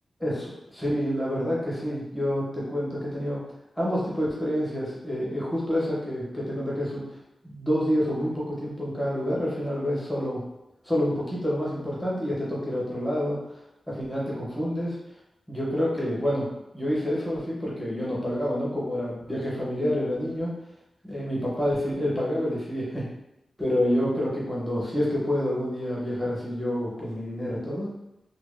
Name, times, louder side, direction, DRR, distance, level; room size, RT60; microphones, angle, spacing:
voice 1, 0.2-3.4 3.8-7.0 7.4-10.4 10.8-13.6 14.0-15.0 15.5-16.5 16.7-20.5 21.0-23.0 23.6-27.9, equal, 5° left, -6 dB, 0.8 m, -28 dB
2.5 x 2.2 x 2.4 m, 0.87 s
wide cardioid pair, 160°, 0 cm